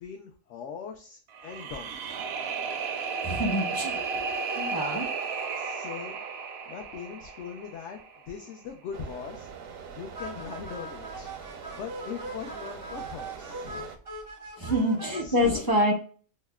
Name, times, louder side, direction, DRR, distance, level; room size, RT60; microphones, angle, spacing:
voice 1, 0.0-2.1 4.1-4.3 5.2-6.2 6.7-8.0 8.3-11.3 11.7-13.9 14.6-14.9 15.2-15.7, left 6 dB, 70° left, 3 dB, 0.8 m, -41 dB
sound 1, 1.3-8.4, right 5 dB, 65° right, 0.7 m, -34 dB
voice 2, 3.2-4.0 4.6-5.1 14.6-15.9, equal, 25° left, -1 dB, 0.5 m, -26 dB
sound 2, 8.9-14.0, right 7 dB, 85° right, 1.0 m, -44 dB
sound 3, 10.1-15.2, right 2 dB, 25° right, 0.4 m, -40 dB
5.5 x 2.1 x 2.2 m, 0.42 s
omnidirectional pair, 1.4 m